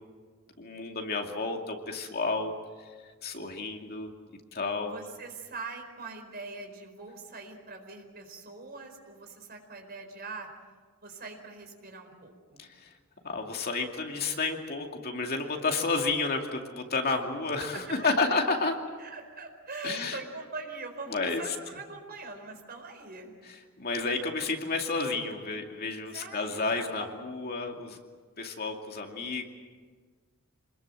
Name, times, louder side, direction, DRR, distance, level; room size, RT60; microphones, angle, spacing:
voice 1, 0.6-2.5 3.2-4.1 4.5-4.9 12.6-12.9 13.2-18.7 19.8-20.2 21.1-21.4 23.8-28.0 28.4-29.5, left 3 dB, 45° left, 2 dB, 2.5 m, -31 dB
voice 2, 4.9-10.5 11.0-12.6 17.1-17.2 17.6-17.8 19.0-23.3 26.1-26.8, right 3 dB, 45° right, 4 dB, 4.6 m, -42 dB
27.5 x 21.0 x 7.7 m, 1.5 s
head